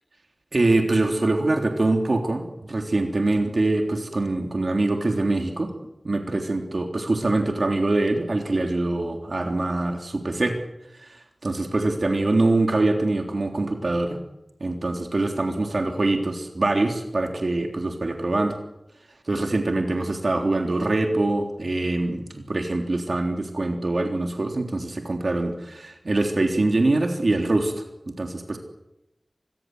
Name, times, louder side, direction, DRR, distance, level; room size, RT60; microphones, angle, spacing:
voice 1, 0.5-5.7 6.0-10.6 11.4-14.2 14.6-18.6 19.3-27.7 28.1-28.6, right 2 dB, 60° right, 3 dB, 3.4 m, -24 dB
26.0 x 21.0 x 8.0 m, 0.90 s
wide cardioid pair, 55°, 0 cm